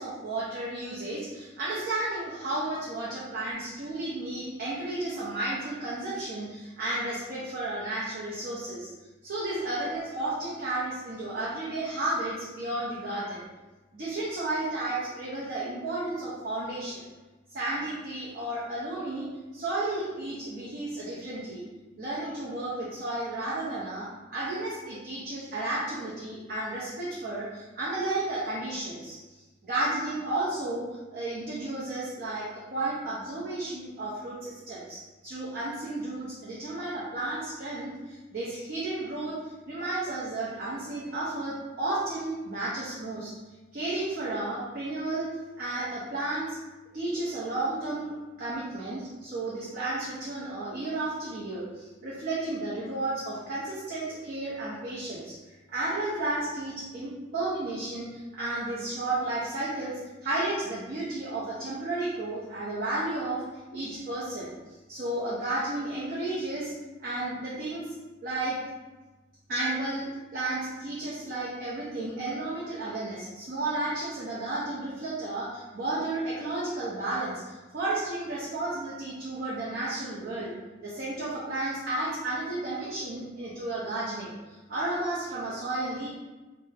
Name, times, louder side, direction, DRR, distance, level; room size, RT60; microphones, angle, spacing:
voice 1, 0.0-8.9 9.2-13.4 13.9-17.1 17.5-19.3 19.5-21.6 22.0-39.4 39.7-43.3 43.7-45.3 45.6-46.6 46.9-55.4 55.7-63.4 63.7-66.7 67.0-67.9 68.2-68.6 69.5-80.5 80.8-86.1, right 2 dB, 45° right, -8 dB, 0.6 m, -33 dB
3.6 x 2.0 x 2.7 m, 1.2 s
head